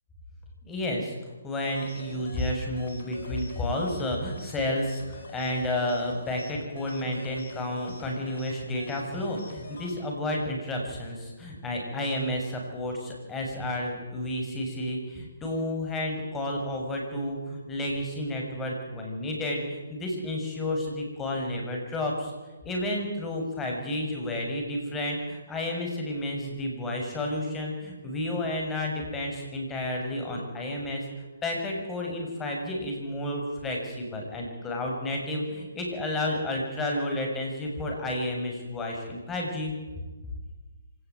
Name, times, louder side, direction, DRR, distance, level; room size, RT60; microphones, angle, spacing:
voice 1, 0.6-22.3 22.6-31.0 31.4-39.7, left 1 dB, 15° left, 1 dB, 6.8 m, -31 dB
sound 1, 1.6-10.0, left 3 dB, 50° left, 5.2 m, -46 dB
25.5 x 18.0 x 9.4 m, 1.3 s
hypercardioid pair, 145°, 0 cm